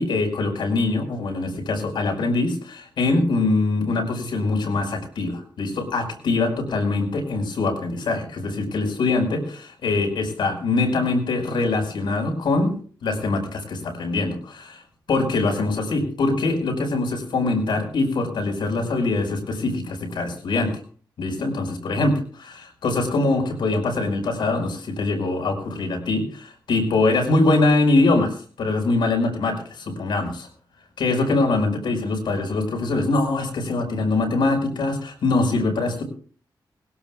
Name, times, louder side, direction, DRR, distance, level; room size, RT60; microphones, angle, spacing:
voice 1, 0.0-12.7 13.0-14.8 15.1-20.7 21.2-30.5 31.0-36.0, left 3 dB, 85° left, 3 dB, 5.2 m, -23 dB
21.5 x 17.0 x 2.4 m, 0.43 s
wide cardioid pair, 135°, 8 cm